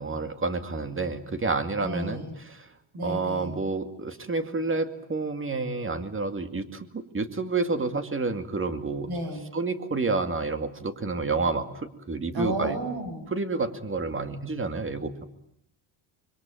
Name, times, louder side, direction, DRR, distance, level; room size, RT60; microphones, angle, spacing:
voice 1, 0.0-2.7 3.0-9.1 9.5-12.8 13.3-15.2, right 3 dB, 25° right, 10 dB, 2.4 m, -29 dB
voice 2, 1.8-2.3 2.9-3.5 9.1-9.4 12.3-13.2, right 1 dB, 50° right, 5 dB, 7.3 m, -32 dB
25.5 x 22.5 x 9.2 m, 0.73 s
cardioid pair, 100°, 47 cm